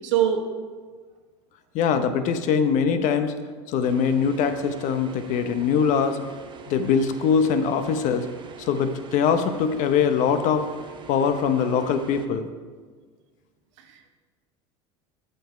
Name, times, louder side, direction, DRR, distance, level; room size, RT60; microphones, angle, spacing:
voice 1, 0.0-0.4 13.8-14.1, right 10 dB, 80° right, 4 dB, 1.1 m, -23 dB
voice 2, 1.7-3.4 3.7-6.2 6.7-8.3 8.6-10.7 11.1-12.5, left 6 dB, 55° left, 9 dB, 0.8 m, -22 dB
sound 1, 3.8-12.3, right 8 dB, 30° right, 0.9 m, -44 dB
7.8 x 6.8 x 5.0 m, 1.5 s
hypercardioid pair, 90°, 15 cm